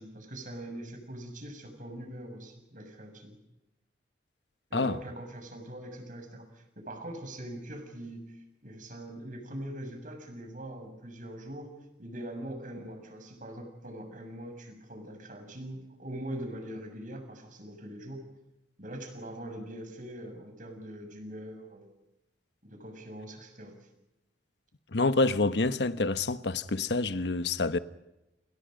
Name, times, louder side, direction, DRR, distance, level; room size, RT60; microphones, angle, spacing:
voice 1, 0.0-3.4 4.7-11.7 12.0-18.2 18.8-21.9 22.6-23.9, right 1 dB, 50° right, 6.9 m, -42 dB
voice 2, 24.9-27.8, left 3 dB, 75° left, 1.2 m, -27 dB
29.5 x 28.0 x 5.3 m
head